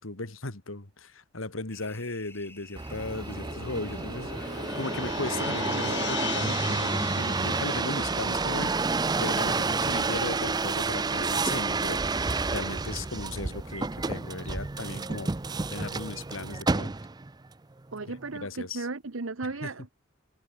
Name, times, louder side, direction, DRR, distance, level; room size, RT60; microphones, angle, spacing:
voice 1, 0.0-8.7 9.1-15.3 15.7-16.9 18.3-18.9 19.6-19.7, left 2 dB, 90° left, 2.5 m, -37 dB
sound 1, 1.7-8.4, left 3 dB, 10° left, 2.2 m, -52 dB
sound 2, 2.8-17.3 17.9-18.4, right 3 dB, 20° right, 0.5 m, -30 dB
sound 3, 3.2-9.8, left 8 dB, 55° left, 1.1 m, -39 dB
voice 2, 17.9-19.9, right 3 dB, 85° right, 1.1 m, -35 dB
head